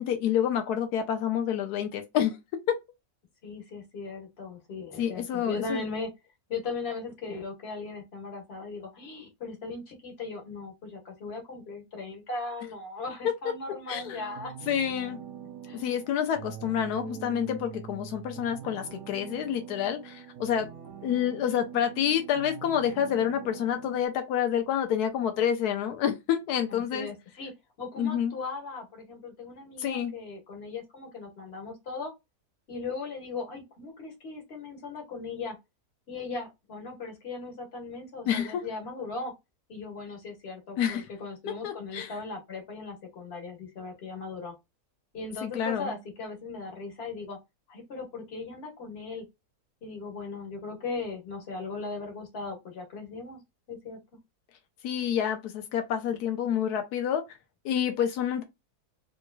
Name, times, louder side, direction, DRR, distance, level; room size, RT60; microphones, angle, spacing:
voice 1, 0.0-2.4 5.0-5.8 13.9-14.2 14.7-15.2 15.7-20.7 21.0-27.1 28.0-28.3 29.8-30.1 38.3-38.6 40.8-41.1 41.6-42.1 45.4-46.0 54.8-57.2 57.6-58.4, left 9 dB, 85° left, 1.2 m, -28 dB
voice 2, 3.4-6.1 6.5-14.5 15.6-15.8 26.7-32.1 32.7-35.6 36.1-39.3 39.7-44.5 45.1-47.4 47.7-49.3 49.8-53.4 53.7-54.0, left 3 dB, 45° left, 1.4 m, -38 dB
sound 1, 13.9-24.1, right 8 dB, 65° right, 1.1 m, -43 dB
3.4 x 3.1 x 2.2 m
omnidirectional pair, 1.7 m